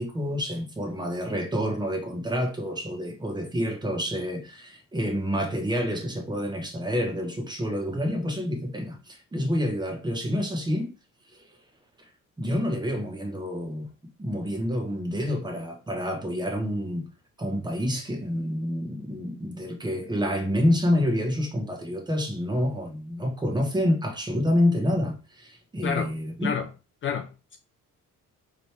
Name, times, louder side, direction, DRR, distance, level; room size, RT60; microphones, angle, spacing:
voice 1, 0.0-10.9 12.4-13.9 14.2-17.0 17.4-26.5, equal, 15° right, 1.0 m, -28 dB
voice 2, 27.0-27.6, left 7 dB, 40° left, 0.5 m, -29 dB
4.0 x 3.2 x 3.2 m
cardioid pair, 130°, 32 cm